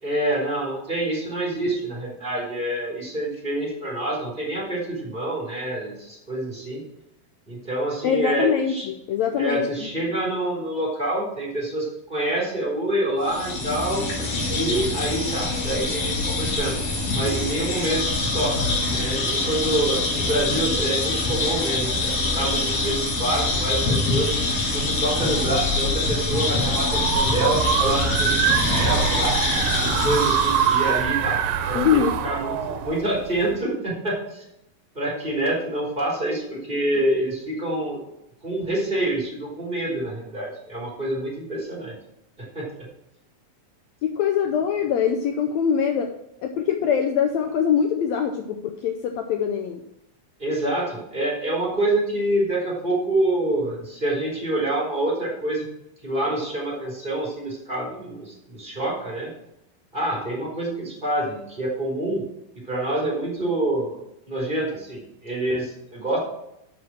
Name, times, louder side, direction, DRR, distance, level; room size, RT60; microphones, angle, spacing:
voice 1, 0.0-6.8 7.5-8.9 9.4-14.1 14.5-16.8 17.1-18.0 18.3-24.3 24.7-29.3 29.8-34.4 34.9-38.0 38.4-41.9 42.5-42.7 50.4-55.7 56.0-59.3 59.9-62.2 62.7-64.0 64.3-66.2, right 1 dB, 15° right, -5 dB, 3.1 m, -27 dB
voice 2, 8.0-10.0 31.7-32.3 44.0-46.1 46.4-49.8, left 7 dB, 85° left, 5 dB, 1.5 m, -23 dB
sound 1, 13.2-31.0, left 2 dB, 50° left, 3.2 m, -24 dB
sound 2, 26.4-33.6, right 9 dB, 80° right, 2.4 m, -24 dB
7.5 x 6.2 x 7.2 m, 0.84 s
omnidirectional pair, 4.0 m